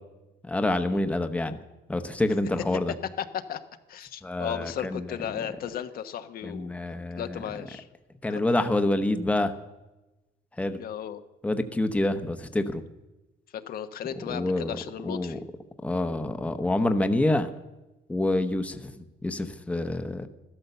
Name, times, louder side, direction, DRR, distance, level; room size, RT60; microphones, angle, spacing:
voice 1, 0.5-1.6 1.9-2.9 4.2-5.2 6.4-7.4 8.2-9.5 10.6-10.8 11.4-12.8 14.3-14.8 15.0-15.4 15.8-17.5 18.1-20.3, left 1 dB, 5° left, 7 dB, 1.0 m, -27 dB
voice 2, 3.2-3.6 3.9-6.7 7.2-7.9 8.3-8.4 10.8-11.2 13.5-15.4, left 9 dB, 60° left, 9 dB, 1.0 m, -35 dB
14.0 x 12.5 x 6.8 m, 1.0 s
cardioid pair, 110°, 17 cm